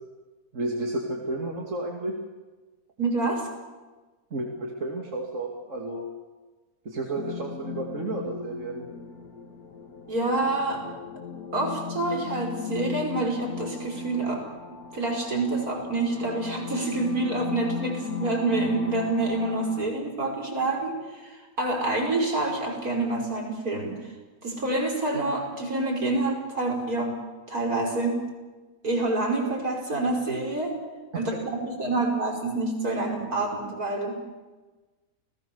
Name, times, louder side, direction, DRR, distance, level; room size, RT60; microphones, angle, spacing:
voice 1, 0.5-2.1 4.3-6.1 6.8-8.9 31.1-31.2, right 2 dB, 55° right, 0 dB, 2.8 m, -32 dB
voice 2, 3.0-3.5 10.1-10.8 11.5-14.4 14.9-24.0 24.4-27.2 27.5-28.2 28.8-30.8 31.1-34.2, right 2 dB, 75° right, 0 dB, 5.8 m, -27 dB
sound 1, 7.2-19.9, left 7 dB, 80° left, 2.3 m, -38 dB
29.5 x 18.5 x 7.1 m, 1.2 s
omnidirectional pair, 1.6 m